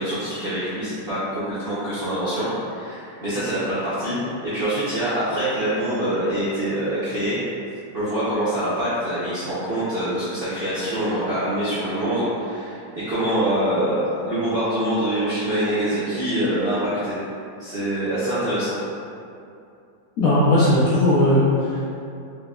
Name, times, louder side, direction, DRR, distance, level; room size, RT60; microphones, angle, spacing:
voice 1, 0.0-4.2 4.4-7.4 7.9-17.2 17.6-18.8, right 1 dB, 90° right, -13 dB, 0.5 m, -25 dB
voice 2, 20.2-21.8, left 1 dB, 80° left, -9 dB, 0.7 m, -17 dB
4.9 x 2.1 x 2.3 m, 2.5 s
omnidirectional pair, 2.0 m